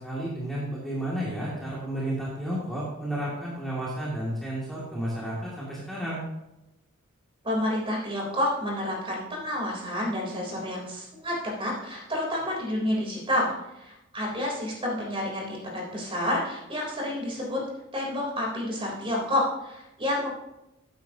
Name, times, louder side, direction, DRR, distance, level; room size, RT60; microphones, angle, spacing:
voice 1, 0.0-6.2, right 1 dB, ahead, -7 dB, 2.3 m, -32 dB
voice 2, 7.4-17.6 17.9-20.3, left 1 dB, 25° right, -2 dB, 3.4 m, -29 dB
14.0 x 9.4 x 2.8 m, 0.92 s
head